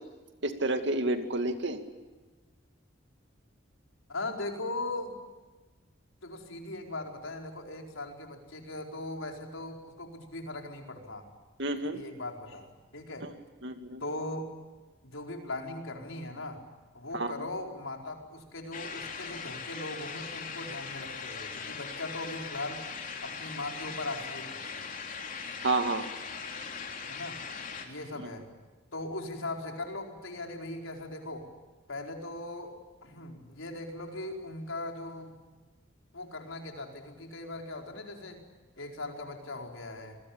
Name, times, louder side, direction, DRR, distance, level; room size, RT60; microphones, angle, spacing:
voice 1, 0.4-1.8 11.6-12.0 13.6-14.0 17.1-17.3 25.6-26.0, right 2 dB, 60° right, 7 dB, 2.4 m, -29 dB
voice 2, 4.1-5.2 6.2-11.3 11.8-13.3 14.0-14.5 15.0-16.6 16.9-22.9 23.2-24.7 27.1-27.4 27.8-28.5 28.9-31.4 31.9-32.7 33.0-35.4 36.1-38.4 38.8-40.2, left 2 dB, 80° left, 2 dB, 4.7 m, -39 dB
sound 1, 18.7-27.9, left 5 dB, 40° left, 3.5 m, -40 dB
28.0 x 21.5 x 8.7 m, 1.3 s
head